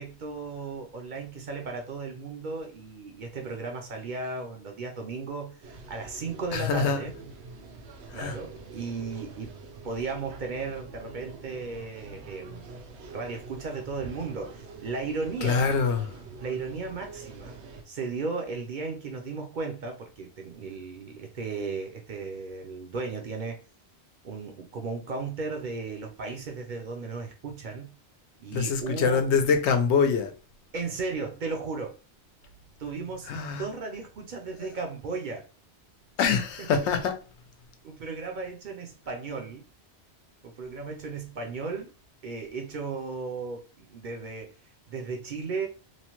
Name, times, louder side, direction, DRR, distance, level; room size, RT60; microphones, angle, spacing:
voice 1, 0.0-7.1 8.1-9.6 9.8-12.7 13.1-15.7 16.4-17.6 17.9-23.6 24.2-28.0 28.4-29.3 30.7-32.0 32.8-33.3 33.6-35.4 36.2-36.3 36.6-36.7 37.8-39.7 40.4-41.9 42.2-44.5 44.9-45.7, right 4 dB, 55° right, 0.6 m, -35 dB
sound 1, 5.6-17.8, right 3 dB, 80° right, 0.9 m, -45 dB
voice 2, 6.5-7.1 8.1-8.4 15.4-16.0 28.5-30.3 33.3-33.6 36.2-37.2, left 5 dB, 90° left, 0.9 m, -24 dB
3.0 x 2.1 x 2.9 m
omnidirectional pair, 1.1 m